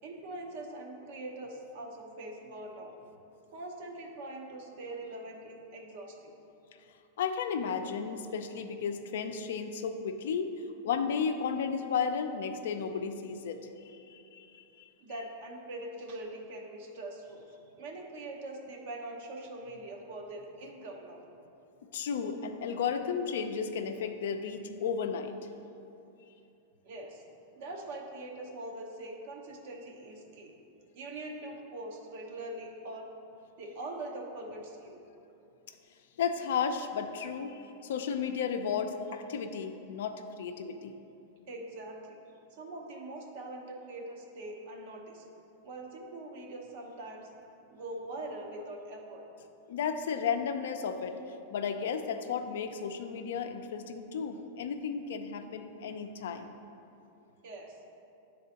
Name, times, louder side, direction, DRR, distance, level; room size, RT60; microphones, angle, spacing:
voice 1, 0.0-2.9 3.5-6.3 15.0-21.2 26.8-27.2 27.5-30.5 30.9-33.1 33.6-35.0 41.5-42.2 42.5-45.2 45.6-49.2 57.4-57.8, right 2 dB, 65° right, 1 dB, 0.9 m, -43 dB
voice 2, 7.2-10.5 10.8-14.9 21.9-25.3 36.2-40.9 49.7-51.2 51.5-56.5, left 6 dB, 75° left, 7 dB, 0.4 m, -33 dB
9.2 x 3.8 x 2.8 m, 2.7 s
hypercardioid pair, 120°, 0 cm